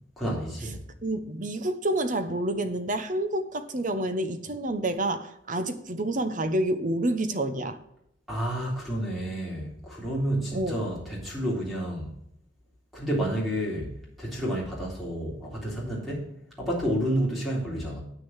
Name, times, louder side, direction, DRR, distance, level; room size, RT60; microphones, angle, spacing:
voice 1, 0.2-0.8 8.3-12.1 12.9-13.9 14.2-16.3 16.6-18.0, equal, ahead, 3.5 m, -30 dB
voice 2, 1.0-7.8 10.5-10.8, right 1 dB, 45° right, 0.9 m, -28 dB
8.5 x 6.5 x 6.3 m
head